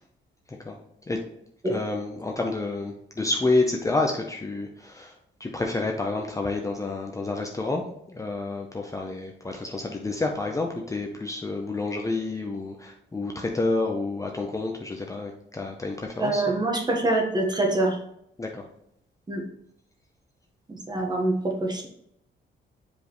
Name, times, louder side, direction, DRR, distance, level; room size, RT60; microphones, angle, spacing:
voice 1, 1.7-5.1 5.4-16.6 18.4-18.7, left 2 dB, 15° left, 1 dB, 0.7 m, -29 dB
voice 2, 16.2-18.0 19.3-19.4 20.7-21.9, right 2 dB, 20° right, 1 dB, 1.3 m, -25 dB
7.5 x 5.1 x 3.1 m, 0.74 s
wide cardioid pair, 150°, 19 cm